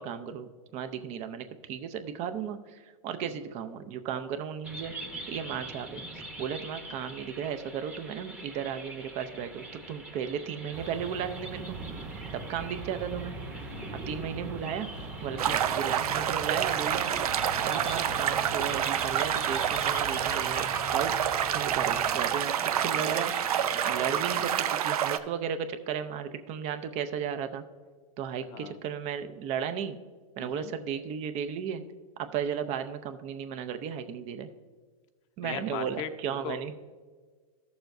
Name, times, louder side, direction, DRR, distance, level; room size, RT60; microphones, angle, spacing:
voice 1, 0.0-4.9 5.3-11.8 12.3-13.3 14.1-14.9 15.2-17.1 17.6-21.1 21.5-23.3 23.8-27.6 28.2-30.0 30.4-31.8 32.2-34.5 35.4-36.7, right 8 dB, 35° right, 9 dB, 0.6 m, -35 dB
sound 1, 4.6-24.5, right 2 dB, 5° right, 0.9 m, -43 dB
sound 2, 10.7-22.1, right 2 dB, 65° right, 2.0 m, -42 dB
sound 3, 15.4-25.2, right 9 dB, 90° right, 0.5 m, -28 dB
voice 2, 30.4-30.7 35.4-36.1 36.4-36.8, left 9 dB, 55° left, 9 dB, 0.7 m, -39 dB
13.5 x 6.9 x 2.6 m, 1.5 s
hypercardioid pair, 130°, 19 cm